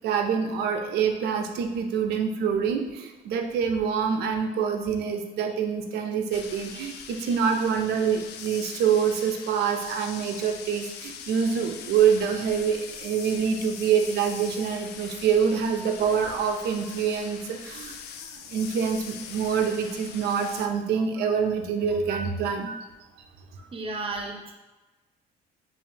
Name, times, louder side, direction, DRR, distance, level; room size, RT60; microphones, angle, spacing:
voice 1, 0.0-18.0 18.5-22.9, right 7 dB, 75° right, 4 dB, 0.6 m, -26 dB
sound 1, 6.3-20.7, left 7 dB, 80° left, 0.4 m, -42 dB
voice 2, 6.7-7.3 23.7-24.5, right 3 dB, 35° right, 2 dB, 0.7 m, -35 dB
5.1 x 2.7 x 2.7 m, 1.2 s
cardioid pair, 110°, 17 cm